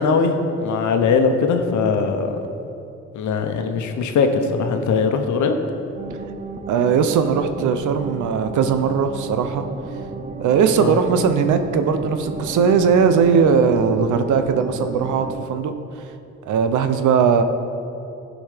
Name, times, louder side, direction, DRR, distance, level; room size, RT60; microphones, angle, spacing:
voice 1, 0.0-2.4 3.1-5.6 10.8-11.0, left 5 dB, 70° left, 6 dB, 1.0 m, -20 dB
sound 1, 6.0-15.5, right 3 dB, 25° right, 0.7 m, -33 dB
voice 2, 6.7-9.6 10.4-15.7 16.5-17.4, right 6 dB, 80° right, 8 dB, 0.8 m, -19 dB
15.5 x 5.1 x 5.1 m, 2.8 s
cardioid pair, 90°, 30 cm